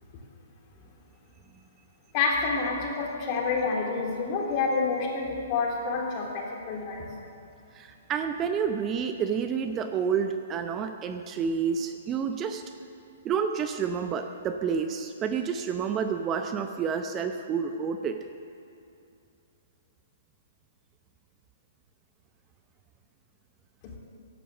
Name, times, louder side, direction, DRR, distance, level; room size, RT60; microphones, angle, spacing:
voice 1, 2.1-7.1, left 4 dB, 40° left, -1 dB, 3.4 m, -28 dB
voice 2, 7.7-12.6 13.2-18.3, right 6 dB, 25° right, 7 dB, 0.7 m, -29 dB
15.0 x 11.5 x 7.2 m, 2.6 s
figure-of-eight pair, 120°, 0 cm